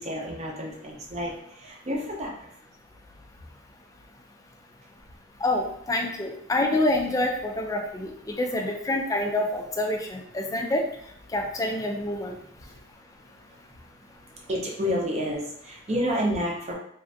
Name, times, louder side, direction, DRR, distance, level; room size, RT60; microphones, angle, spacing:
voice 1, 0.0-2.3 14.5-16.7, equal, 35° right, -2 dB, 0.6 m, -29 dB
voice 2, 5.4-10.8 11.3-12.4, left 1 dB, 15° left, 2 dB, 0.3 m, -27 dB
3.2 x 2.5 x 2.6 m, 0.71 s
head